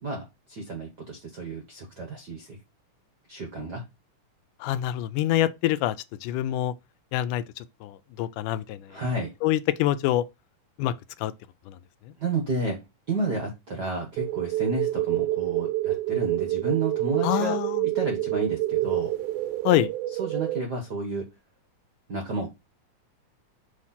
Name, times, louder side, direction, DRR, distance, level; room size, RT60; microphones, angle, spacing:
voice 1, 0.0-2.6 3.3-3.8 8.9-9.3 12.2-12.8 13.1-17.6 17.9-19.1 20.2-21.3 22.1-22.5, right 3 dB, 65° right, 1.0 m, -31 dB
voice 2, 4.6-6.0 6.2-6.7 7.1-9.0 9.4-10.3 10.8-10.9 11.2-11.3 11.7-11.8 17.2-17.8 19.6-19.9, left 14 dB, 85° left, 2.0 m, -25 dB
sound 1, 14.2-20.6, right 15 dB, 85° right, 2.1 m, -27 dB
6.3 x 3.2 x 5.6 m
omnidirectional pair, 3.7 m